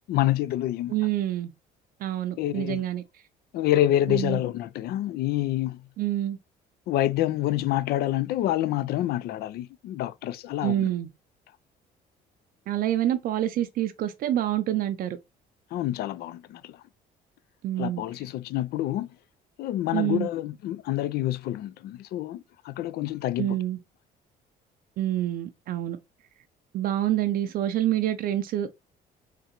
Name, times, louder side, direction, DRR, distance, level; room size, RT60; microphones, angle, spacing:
voice 1, 0.1-0.9 2.4-2.8 3.5-5.8 6.9-10.9 15.7-16.8 17.8-19.1 19.6-23.6, left 13 dB, 70° left, 0.4 m, -27 dB
voice 2, 0.9-1.5 2.0-3.0 4.1-4.4 6.0-6.4 10.6-11.1 12.7-15.2 17.6-18.0 19.9-20.3 23.4-23.8 25.0-26.0 26.7-28.7, right 12 dB, 60° right, 0.4 m, -27 dB
3.7 x 3.3 x 2.8 m
cardioid pair, 110°, 17 cm